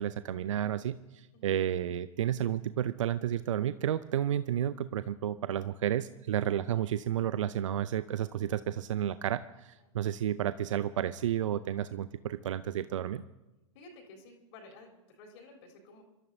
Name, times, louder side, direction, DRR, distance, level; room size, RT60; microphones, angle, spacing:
voice 1, 0.0-13.2, right 10 dB, 70° right, 14 dB, 0.5 m, -31 dB
voice 2, 13.7-16.0, left 2 dB, 55° left, 0 dB, 3.8 m, -53 dB
27.0 x 13.5 x 2.7 m, 1.0 s
figure-of-eight pair, 100°, 17 cm